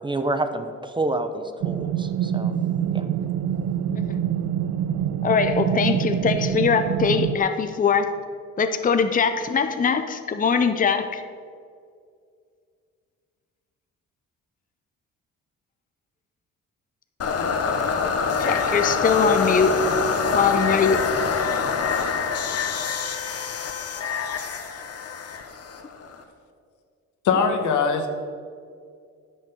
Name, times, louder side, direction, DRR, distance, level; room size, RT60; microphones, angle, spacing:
voice 1, 0.0-2.6 2.9-3.1, right 2 dB, 15° right, 8 dB, 0.8 m, -28 dB
sound 1, 1.6-7.4, right 9 dB, 60° right, 0.6 m, -25 dB
voice 2, 5.2-8.1 8.6-11.2 18.0-19.8 20.3-21.0, left 6 dB, 25° left, 8 dB, 0.7 m, -22 dB
sound 2, 17.2-26.2, left 5 dB, 55° left, 1.2 m, -25 dB
voice 3, 27.2-28.1, left 5 dB, 75° left, 6 dB, 1.3 m, -21 dB
10.0 x 6.3 x 6.9 m, 2.2 s
cardioid pair, 90°, 30 cm